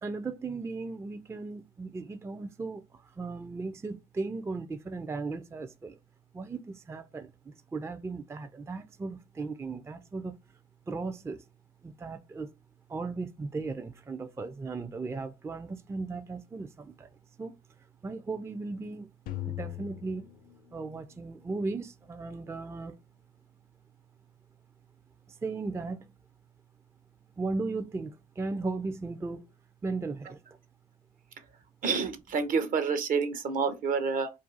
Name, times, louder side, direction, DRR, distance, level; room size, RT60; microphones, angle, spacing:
voice 1, 0.0-6.0 6.3-10.4 10.9-11.4 11.8-12.5 12.9-17.1 17.4-17.5 18.0-19.1 19.5-20.3 20.7-23.0 25.3-26.1 27.4-29.4 29.8-30.4, right 3 dB, 15° right, 0.4 m, -36 dB
sound 1, 19.3-21.4, left 13 dB, 60° left, 0.5 m, -40 dB
voice 2, 31.8-34.3, right 5 dB, 55° right, 0.6 m, -28 dB
2.4 x 2.4 x 3.9 m
hypercardioid pair, 55°, 17 cm